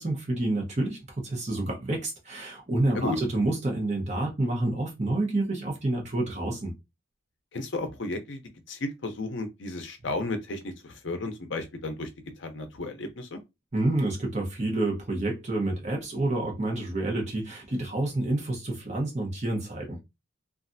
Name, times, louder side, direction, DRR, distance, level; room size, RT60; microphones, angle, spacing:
voice 1, 0.0-6.7 13.7-20.0, right 2 dB, 35° right, 0.9 m, -28 dB
voice 2, 7.5-8.4 8.7-12.1 12.4-13.4, left 2 dB, 60° left, 0.6 m, -33 dB
3.1 x 2.4 x 2.6 m
head